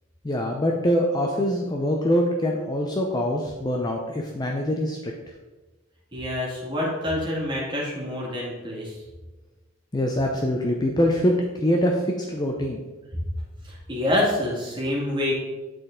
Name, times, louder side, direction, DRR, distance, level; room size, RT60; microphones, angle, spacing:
voice 1, 0.2-5.1 9.9-12.8, equal, 20° left, 1 dB, 0.5 m, -24 dB
voice 2, 6.1-9.0 13.7-15.3, left 1 dB, 25° right, -5 dB, 2.0 m, -26 dB
9.0 x 4.1 x 3.7 m, 1.2 s
head